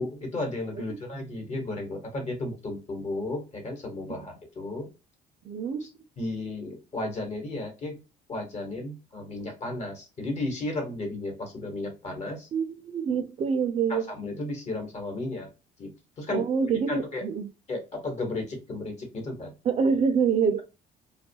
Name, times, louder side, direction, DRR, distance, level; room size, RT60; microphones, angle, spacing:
voice 1, 0.0-4.9 5.8-5.9 6.2-8.0 8.3-12.5 13.9-15.5 15.8-16.5 16.9-17.3 17.7-19.5, left 2 dB, 40° left, 1.1 m, -34 dB
voice 2, 5.4-5.8 12.5-14.1 16.3-17.5 19.7-20.6, right 6 dB, 40° right, 0.4 m, -26 dB
2.3 x 2.2 x 2.7 m
cardioid pair, 110°, 17 cm